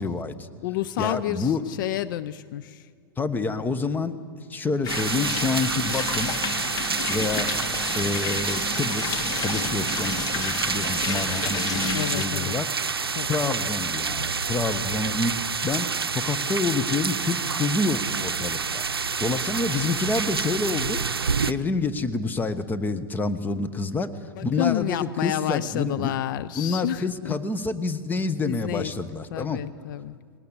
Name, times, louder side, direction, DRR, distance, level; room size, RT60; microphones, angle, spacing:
voice 1, 0.0-0.5 1.0-1.6 3.2-4.1 4.5-6.3 7.0-7.5 7.9-12.7 13.2-18.9 19.2-21.0 21.5-26.1 26.6-29.6, left 3 dB, 15° left, 11 dB, 1.2 m, -28 dB
voice 2, 0.6-2.9 3.4-3.7 11.9-12.5 13.1-13.7 24.4-27.4 28.4-28.9 29.3-30.2, left 13 dB, 60° left, 14 dB, 0.6 m, -30 dB
sound 1, 4.8-12.3, left 5 dB, 30° left, 1.6 m, -31 dB
sound 2, 4.9-21.5, right 5 dB, 90° right, 0.6 m, -28 dB
20.5 x 19.0 x 8.4 m, 2.1 s
hypercardioid pair, 100°, 12 cm